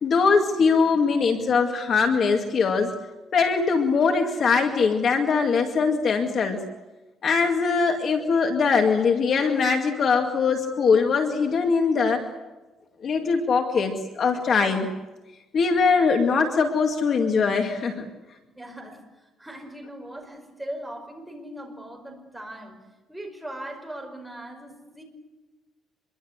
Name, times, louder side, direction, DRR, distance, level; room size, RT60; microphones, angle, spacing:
voice 1, 0.0-2.9 3.3-6.6 7.2-12.3 13.0-14.9 15.5-18.0, left 5 dB, 40° left, 4 dB, 2.3 m, -22 dB
voice 2, 18.5-22.8 23.1-25.0, right 1 dB, 5° right, 2 dB, 5.3 m, -39 dB
25.5 x 23.0 x 8.2 m, 1.1 s
cardioid pair, 160°, 0 cm